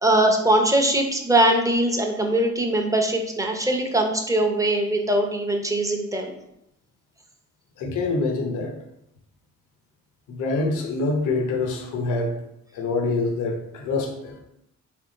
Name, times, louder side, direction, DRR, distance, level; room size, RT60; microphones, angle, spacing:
voice 1, 0.0-6.3, right 1 dB, 10° right, 3 dB, 0.7 m, -21 dB
voice 2, 7.8-8.7 10.3-12.4 12.7-14.4, left 3 dB, 85° left, 1 dB, 0.8 m, -25 dB
3.5 x 3.0 x 3.9 m, 0.81 s
cardioid pair, 90°, 30 cm